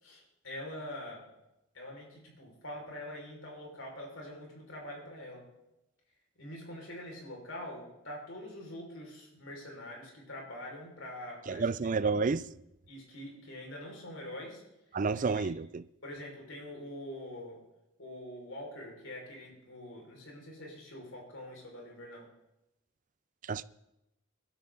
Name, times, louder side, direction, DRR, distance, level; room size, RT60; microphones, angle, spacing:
voice 1, 0.0-1.2 1.7-5.4 6.4-11.7 12.0-12.1 12.9-14.6 15.2-15.5 16.0-17.6 18.0-22.3, left 1 dB, 70° left, 5.4 m, -44 dB
voice 2, 11.5-12.5 14.9-15.8 23.5-23.6, right 4 dB, 40° right, 0.4 m, -30 dB
21.5 x 12.5 x 4.0 m
head